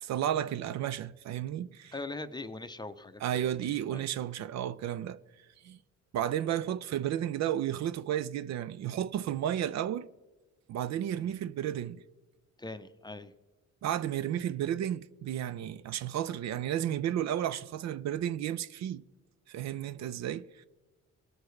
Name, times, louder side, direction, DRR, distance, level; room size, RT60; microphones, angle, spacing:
voice 1, 0.0-1.9 3.2-5.2 5.6-5.8 6.1-10.1 10.7-12.0 13.8-19.0 19.5-20.7, right 11 dB, 65° right, 0.4 m, -32 dB
voice 2, 1.9-3.2 3.7-4.0 11.2-11.4 12.6-13.3, left 2 dB, 15° left, 0.5 m, -41 dB
18.5 x 6.7 x 3.2 m
cardioid pair, 90°, 30 cm